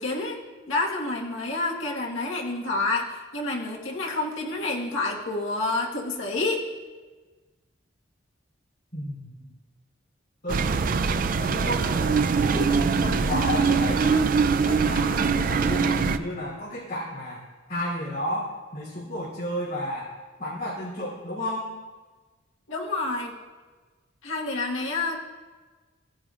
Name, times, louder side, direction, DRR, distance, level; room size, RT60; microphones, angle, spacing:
voice 1, 0.0-6.7 22.7-23.3 24.2-25.2, left 2 dB, 85° left, -2 dB, 1.4 m, -28 dB
voice 2, 8.9-9.4 10.4-10.6 11.4-14.3 14.6-17.4 17.7-20.1 20.4-21.7, left 1 dB, 50° left, -10 dB, 3.2 m, -32 dB
sound 1, 10.5-16.2, right 5 dB, 45° right, 0.4 m, -23 dB
15.5 x 10.0 x 2.4 m, 1.3 s
head